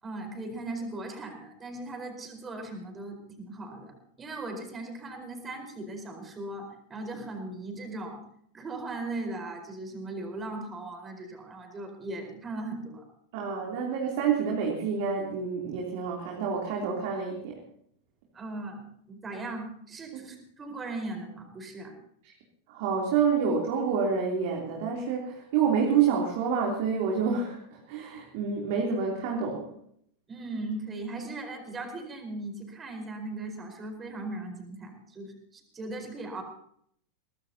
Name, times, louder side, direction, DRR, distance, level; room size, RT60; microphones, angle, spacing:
voice 1, 0.0-8.2 8.5-13.0 18.3-21.9 30.3-36.4, right 2 dB, 20° right, 4 dB, 4.6 m, -38 dB
voice 2, 13.3-17.6 22.2-22.3 22.7-29.7, right 6 dB, 50° right, -1 dB, 3.3 m, -28 dB
23.0 x 19.0 x 2.9 m, 0.69 s
figure-of-eight pair, 90°, 0 cm